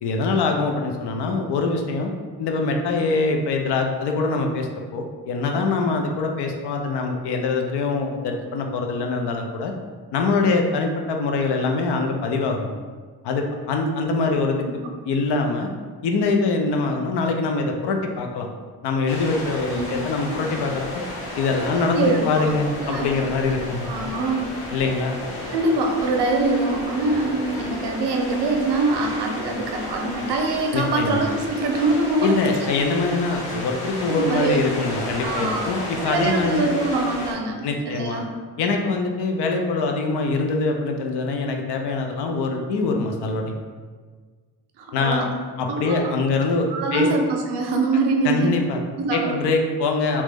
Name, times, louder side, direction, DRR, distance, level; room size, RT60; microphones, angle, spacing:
voice 1, 0.0-2.1 2.4-9.7 10.1-12.7 13.2-14.6 15.0-15.7 16.0-18.5 18.8-20.9 21.4-23.9 24.7-25.2 30.7-31.2 32.2-36.7 37.6-38.2 38.6-43.6 44.9-45.3 45.6-47.1 48.2-48.8 49.1-50.2, left 3 dB, 80° left, 3 dB, 0.5 m, -23 dB
sound 1, 19.1-37.3, left 1 dB, 60° left, 1.0 m, -33 dB
voice 2, 21.5-23.1 23.8-24.6 25.5-32.7 34.1-34.6 35.2-35.7 36.1-38.3 44.8-45.3 45.7-46.1 46.7-48.5 49.0-49.5, right 2 dB, 80° right, 2 dB, 0.6 m, -24 dB
3.0 x 2.1 x 3.4 m, 1.5 s
cardioid pair, 60°, 40 cm